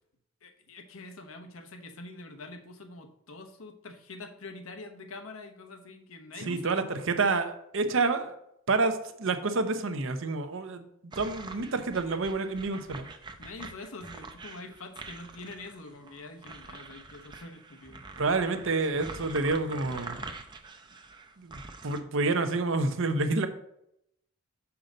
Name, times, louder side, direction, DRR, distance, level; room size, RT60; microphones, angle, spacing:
voice 1, 0.4-6.8 13.4-18.0, left 3 dB, 90° left, 5 dB, 1.0 m, -45 dB
voice 2, 6.5-8.3 8.7-10.8 11.1-13.1 18.2-20.2 21.4-23.5, right 3 dB, 70° right, 8 dB, 0.8 m, -28 dB
sound 1, 11.1-22.0, right 3 dB, 20° right, 0.6 m, -45 dB
6.5 x 5.8 x 3.9 m, 0.76 s
head